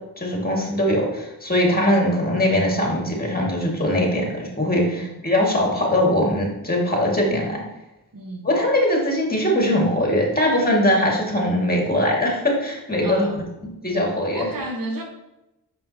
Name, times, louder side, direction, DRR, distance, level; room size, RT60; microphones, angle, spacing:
voice 1, 0.2-7.6 8.4-13.3 13.8-14.5, left 1 dB, 25° left, -1 dB, 2.1 m, -21 dB
voice 2, 8.1-8.5 13.0-13.5 14.3-15.0, right 2 dB, 60° right, 3 dB, 1.1 m, -32 dB
6.2 x 5.4 x 2.8 m, 0.94 s
cardioid pair, 55°, 39 cm